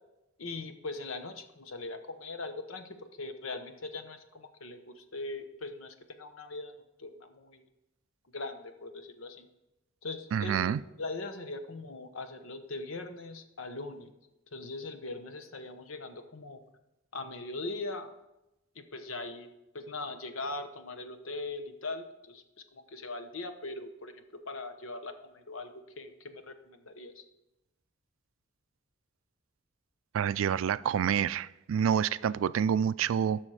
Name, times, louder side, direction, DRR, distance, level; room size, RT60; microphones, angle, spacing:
voice 1, 0.4-6.7 7.0-7.7 8.3-9.5 10.0-14.1 14.5-16.6 17.1-18.1 18.7-19.5 19.7-22.4 22.7-24.1 24.5-25.7 26.0-27.2, left 2 dB, 85° left, 8 dB, 1.0 m, -40 dB
voice 2, 10.3-10.8 30.1-33.4, right 8 dB, 80° right, 18 dB, 0.3 m, -28 dB
13.0 x 6.2 x 4.9 m, 0.94 s
head